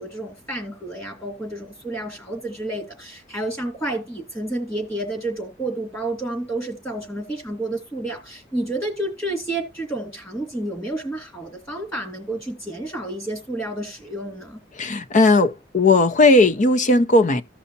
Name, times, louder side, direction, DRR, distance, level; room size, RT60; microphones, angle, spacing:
voice 1, 0.0-14.6, right 1 dB, 15° left, 2.9 m, -30 dB
voice 2, 14.8-17.4, left 2 dB, 40° left, 0.6 m, -16 dB
15.5 x 5.6 x 2.7 m
head